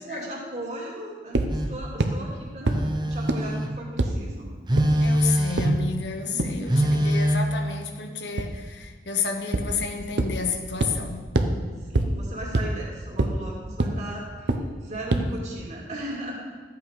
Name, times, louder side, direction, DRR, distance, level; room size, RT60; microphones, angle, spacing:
voice 1, 0.0-2.8 3.1-4.5 6.2-7.0 11.4-14.5 14.8-16.5, right 1 dB, 40° right, -2 dB, 2.4 m, -37 dB
sound 1, 1.3-1.5 2.0-2.1 2.7-2.8 3.3-3.4 4.0-4.1 4.8-4.9 5.6-5.7 6.4-6.5 8.4-8.5 9.5-9.6 10.2-10.3 10.8-10.9 11.3-11.5 11.9-12.0 12.5-12.6 13.2-13.3 13.8-13.9 14.5-14.6 15.1-15.2, right 2 dB, 90° right, 0.9 m, -22 dB
Telephone, 1.5-1.8 2.7-3.8 4.7-5.9 6.7-7.4, equal, 25° right, 0.7 m, -23 dB
voice 2, 5.0-11.3, left 5 dB, 80° left, 4 dB, 1.1 m, -31 dB
13.0 x 8.5 x 4.9 m, 1.5 s
head